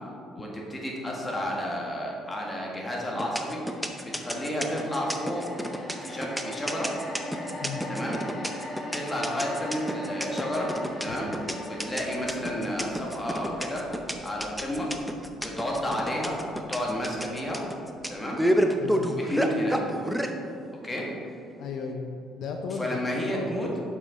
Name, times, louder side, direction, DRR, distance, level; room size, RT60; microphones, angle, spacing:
voice 1, 0.3-3.6 4.0-5.4 6.0-7.0 7.9-8.2 8.9-11.3 11.6-13.9 14.2-14.9 15.4-17.6 18.1-18.4 19.0-19.8 20.8-21.1 22.7-23.7, equal, 20° left, -2 dB, 1.8 m, -31 dB
sound 1, 3.2-17.6 17.9-18.1, left 1 dB, 40° left, 1.6 m, -40 dB
sound 2, 3.2-20.3, equal, ahead, 0.6 m, -29 dB
voice 2, 21.6-23.8, left 4 dB, 70° left, 3 dB, 0.5 m, -35 dB
6.8 x 5.7 x 4.2 m, 2.5 s
supercardioid pair, 85°, 0 cm